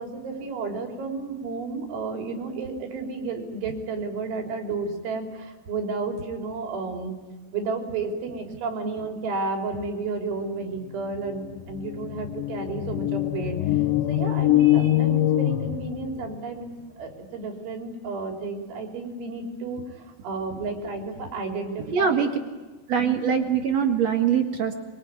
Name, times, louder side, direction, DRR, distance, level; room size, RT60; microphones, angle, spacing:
voice 1, 0.0-7.2 7.5-13.8 14.1-16.7 17.0-22.3, right 4 dB, 80° right, 3 dB, 5.8 m, -32 dB
sound 1, 10.9-11.0 11.3-16.4, left 14 dB, 85° left, 3.5 m, -24 dB
voice 2, 21.9-22.3 22.9-24.7, right 7 dB, 55° right, 4 dB, 1.9 m, -23 dB
24.5 x 23.0 x 9.6 m, 1.2 s
omnidirectional pair, 5.3 m